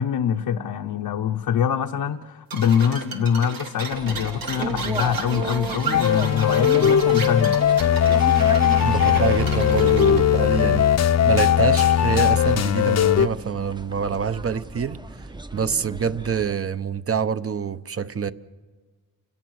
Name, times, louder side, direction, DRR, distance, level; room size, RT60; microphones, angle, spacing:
voice 1, 0.0-7.6, left 8 dB, 85° left, 0.8 m, -24 dB
sound 1, 2.5-10.2, right 5 dB, 90° right, 2.3 m, -33 dB
sound 2, 3.9-16.5, right 2 dB, 15° right, 0.7 m, -36 dB
sound 3, 5.9-13.3, left 9 dB, 50° left, 0.6 m, -19 dB
voice 2, 8.8-10.9 11.2-15.0 15.5-18.3, right 6 dB, 40° right, 0.8 m, -26 dB
29.0 x 17.0 x 6.4 m
cardioid pair, 100°, 34 cm